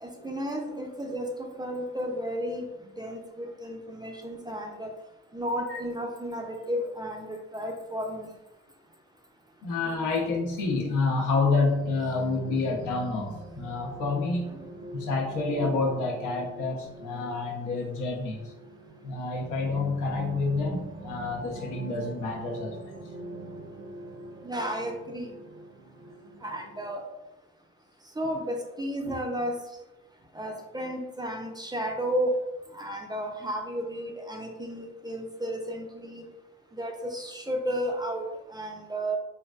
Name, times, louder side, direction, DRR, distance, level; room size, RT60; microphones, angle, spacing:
voice 1, 0.0-2.6 3.0-4.9 5.3-8.3 24.4-25.3 26.4-27.0 28.2-29.6 30.3-32.4 32.7-36.2 36.7-39.2, equal, 15° right, 2 dB, 0.4 m, -33 dB
voice 2, 9.6-14.6 14.9-18.5 19.0-22.9, left 3 dB, 85° left, 0 dB, 0.7 m, -28 dB
sound 1, 11.7-27.0, right 2 dB, 55° right, 0.6 m, -43 dB
3.2 x 2.4 x 2.3 m, 0.94 s
cardioid pair, 90°, 30 cm